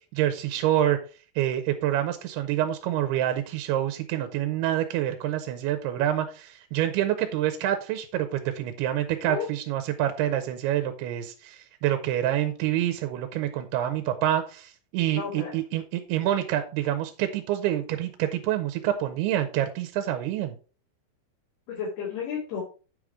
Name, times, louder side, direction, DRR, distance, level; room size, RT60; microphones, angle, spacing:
voice 1, 0.1-1.0 1.4-20.6, right 12 dB, 85° right, 7 dB, 2.8 m, -27 dB
voice 2, 15.1-15.6 21.7-22.6, left 6 dB, 75° left, -8 dB, 5.2 m, -32 dB
9.1 x 5.1 x 4.8 m, 0.36 s
omnidirectional pair, 4.7 m